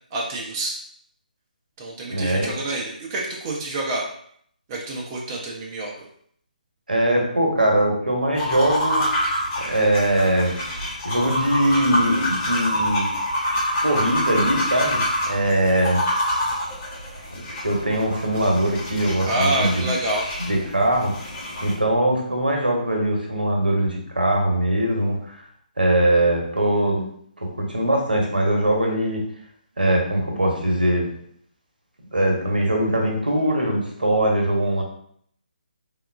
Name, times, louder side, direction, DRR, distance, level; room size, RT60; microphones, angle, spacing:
voice 1, 0.1-0.7 1.8-4.0 4.7-5.9 19.2-20.2, right 1 dB, 20° right, -2 dB, 0.4 m, -27 dB
voice 2, 2.1-2.5 6.9-9.1 9.6-10.6 11.0-13.1 13.8-16.0 17.6-19.9 20.4-21.3 21.6-25.4 25.8-27.1 27.4-29.2 29.8-31.1 32.1-34.8, right 1 dB, 80° right, 0 dB, 0.8 m, -21 dB
sound 1, 8.3-21.7, equal, 25° left, 0.8 m, -26 dB
3.5 x 2.3 x 2.2 m, 0.65 s
figure-of-eight pair, 145°, 5 cm